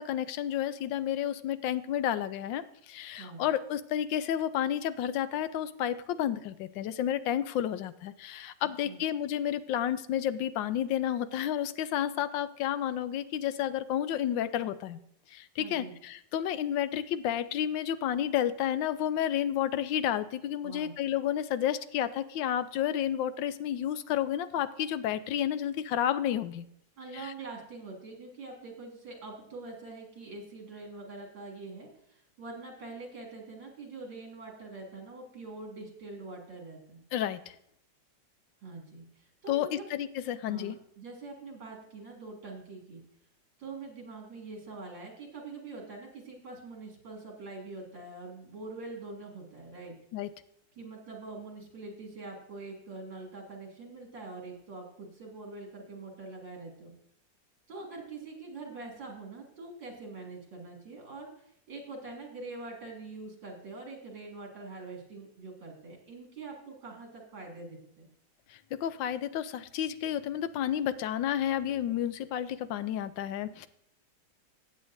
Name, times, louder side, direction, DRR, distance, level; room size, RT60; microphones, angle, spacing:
voice 1, 0.0-15.0 15.3-26.7 27.1-27.3 37.1-37.5 39.5-40.8 50.1-50.3 68.5-73.7, left 10 dB, 80° left, 14 dB, 1.3 m, -31 dB
voice 2, 8.6-9.0 15.6-15.9 20.6-20.9 27.0-37.0 38.6-39.9 40.4-43.0 43.6-49.9 50.8-56.9 57.7-68.1, right 3 dB, 75° right, 0 dB, 2.9 m, -44 dB
15.0 x 8.7 x 2.6 m, 0.74 s
omnidirectional pair, 2.0 m